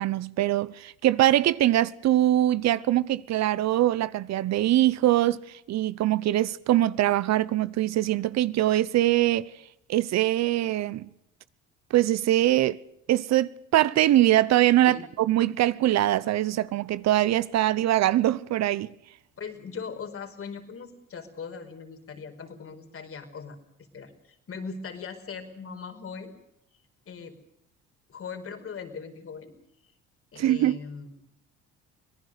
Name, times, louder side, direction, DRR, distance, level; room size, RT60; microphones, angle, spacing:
voice 1, 0.0-5.4 5.7-9.5 9.9-11.1 11.9-12.8 13.1-18.9 30.4-30.8, right 14 dB, 65° right, 0.9 m, -23 dB
voice 2, 19.4-23.6 23.9-26.3 27.0-27.4 28.1-29.5 30.3-31.1, left 5 dB, 50° left, 4.9 m, -39 dB
25.5 x 18.5 x 6.6 m
supercardioid pair, 75°, 29 cm